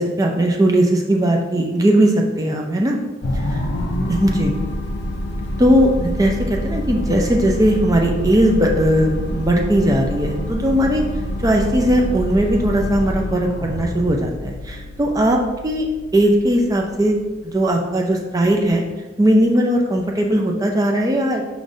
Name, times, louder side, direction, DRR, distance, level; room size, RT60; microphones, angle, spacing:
voice 1, 0.0-3.0 3.5-3.6 4.1-4.5 5.6-11.0 11.4-15.9 16.1-17.2 17.4-18.8 19.2-21.4, right 1 dB, 15° right, 1 dB, 0.4 m, -18 dB
sound 1, 3.2-17.7, equal, 55° left, 0.5 m, -27 dB
5.1 x 3.1 x 2.6 m, 1.2 s
head